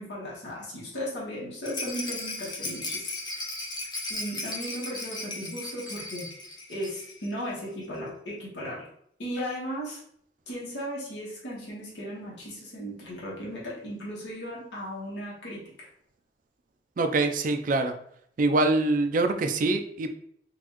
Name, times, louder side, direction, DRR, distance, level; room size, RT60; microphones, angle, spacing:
voice 1, 0.0-3.4 4.1-6.3 6.7-8.9 9.2-10.0 10.5-15.9, equal, 70° left, -5 dB, 1.2 m, -36 dB
Rattle, 1.6-7.3 7.6-7.7 7.9-8.0, left 2 dB, 25° left, 0.6 m, -36 dB
voice 2, 17.0-17.9 18.4-20.1, right 2 dB, 45° right, 6 dB, 0.4 m, -24 dB
4.0 x 2.6 x 3.0 m, 0.67 s
head